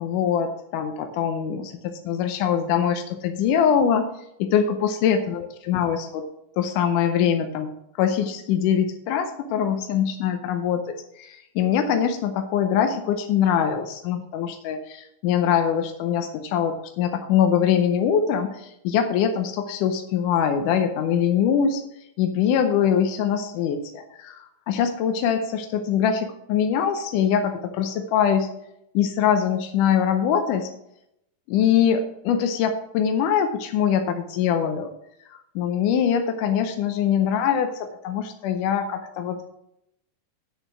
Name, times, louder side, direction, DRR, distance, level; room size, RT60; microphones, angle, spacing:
voice 1, 0.0-4.1 4.4-6.3 6.6-7.7 8.0-21.8 22.2-28.5 28.9-30.7 31.5-34.9 35.3-39.5, left 8 dB, 80° left, 5 dB, 2.1 m, -23 dB
8.9 x 6.4 x 6.0 m, 0.81 s
omnidirectional pair, 4.1 m